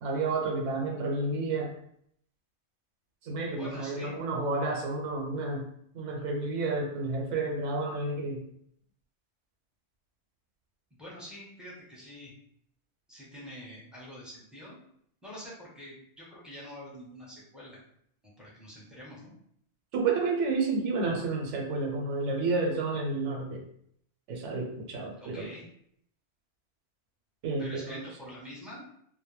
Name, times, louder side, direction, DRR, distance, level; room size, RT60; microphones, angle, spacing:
voice 1, 0.0-1.7 3.2-5.7 5.9-8.4 19.9-23.6 24.3-25.5 27.4-28.0, right 3 dB, 80° right, 1 dB, 0.9 m, -30 dB
voice 2, 3.5-4.1 11.0-12.3 13.1-14.8 15.2-17.8 18.2-19.3 25.2-25.6 27.6-28.9, equal, ahead, -6 dB, 0.5 m, -46 dB
2.2 x 2.1 x 3.0 m, 0.68 s
omnidirectional pair, 1.2 m